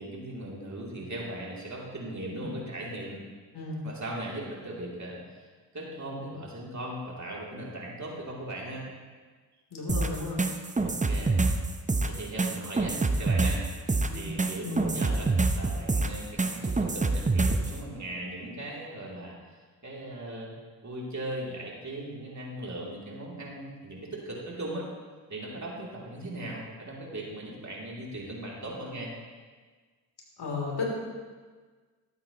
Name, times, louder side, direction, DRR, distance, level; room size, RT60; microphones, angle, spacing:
voice 1, 0.0-3.2 3.8-5.5 5.7-8.9 10.7-11.5 12.1-13.6 14.1-19.5 19.8-20.5 20.8-24.9 25.3-29.1, right 1 dB, 40° right, -4 dB, 3.0 m, -38 dB
voice 2, 9.7-10.4 14.1-14.2 14.6-14.9 30.4-30.9, left 4 dB, 60° left, -2 dB, 3.3 m, -34 dB
sound 1, 9.9-17.7, right 3 dB, 15° right, 0.8 m, -26 dB
12.0 x 8.9 x 3.0 m, 1.4 s
supercardioid pair, 45°, 44 cm